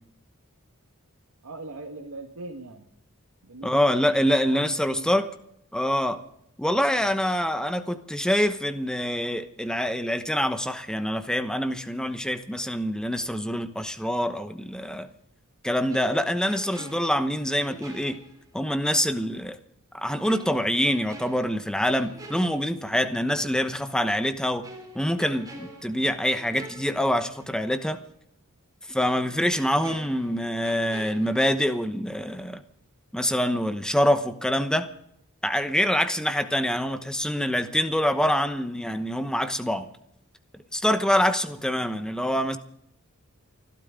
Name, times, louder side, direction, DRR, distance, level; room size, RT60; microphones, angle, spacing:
voice 1, 1.4-2.9 3.4-5.2 6.9-7.1, right 2 dB, 85° right, 2 dB, 1.7 m, -41 dB
voice 2, 3.6-5.3 5.7-6.2 6.6-15.1 15.6-18.2 18.5-19.6 19.9-24.6 24.9-28.0 28.9-32.6 33.1-34.9 35.4-39.9 40.7-42.6, equal, 5° left, 9 dB, 1.0 m, -25 dB
sound 1, 15.9-18.8 19.2-19.3 20.3-23.2 23.5-23.7 24.6-27.6 27.9-28.0 29.0-32.0 32.3-32.5, right 1 dB, 15° right, 4.0 m, -46 dB
29.0 x 12.5 x 3.8 m, 0.74 s
head